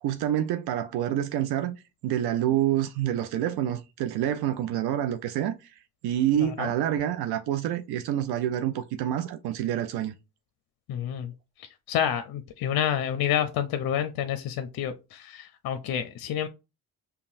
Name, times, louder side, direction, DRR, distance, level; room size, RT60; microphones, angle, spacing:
voice 1, 0.0-1.8 2.0-5.7 6.0-10.2, right 11 dB, 65° right, 0.5 m, -27 dB
voice 2, 6.4-6.7 10.9-11.3 11.6-16.5, left 9 dB, 60° left, 0.6 m, -29 dB
5.3 x 2.2 x 2.5 m
hypercardioid pair, 45°, 43 cm